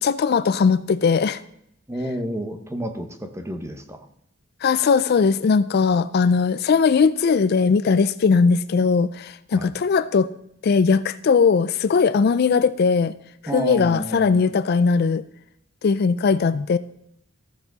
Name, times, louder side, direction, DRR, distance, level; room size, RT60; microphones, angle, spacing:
voice 1, 0.0-1.4 4.6-10.3 10.6-13.1 13.5-15.2 15.8-16.8, left 5 dB, 50° left, 14 dB, 0.4 m, -19 dB
voice 2, 1.9-4.1 9.5-9.7 13.5-14.4, equal, 15° right, 7 dB, 1.0 m, -30 dB
14.0 x 7.2 x 4.0 m, 0.75 s
head